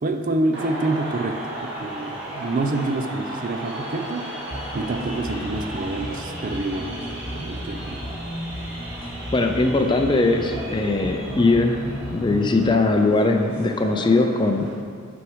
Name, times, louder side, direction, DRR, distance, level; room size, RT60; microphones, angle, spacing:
voice 1, 0.0-4.3 4.7-8.0, right 2 dB, 40° right, 7 dB, 0.4 m, -27 dB
sound 1, 0.5-14.7, right 1 dB, 55° right, 2.0 m, -35 dB
sound 2, 4.5-12.5, equal, 40° left, 1.1 m, -35 dB
voice 2, 9.3-11.8 12.1-14.7, left 2 dB, 20° left, 4 dB, 0.4 m, -20 dB
6.3 x 6.2 x 4.7 m, 2.3 s
head